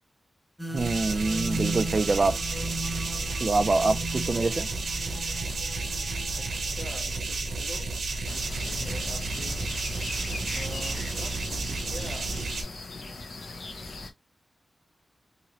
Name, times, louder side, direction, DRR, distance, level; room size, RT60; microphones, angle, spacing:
sound 1, 0.6-6.7, right 1 dB, 5° right, 0.7 m, -37 dB
voice 1, 0.7-2.4 3.4-4.7, right 3 dB, 40° right, 0.3 m, -25 dB
sound 2, 0.8-12.6, right 3 dB, 90° right, 0.7 m, -32 dB
voice 2, 6.4-7.9 8.3-9.6 10.5-12.3, left 2 dB, 45° left, 1.4 m, -44 dB
sound 3, 8.2-14.1, left 3 dB, 80° left, 0.9 m, -39 dB
2.9 x 2.8 x 2.9 m
wide cardioid pair, 135°, 0 cm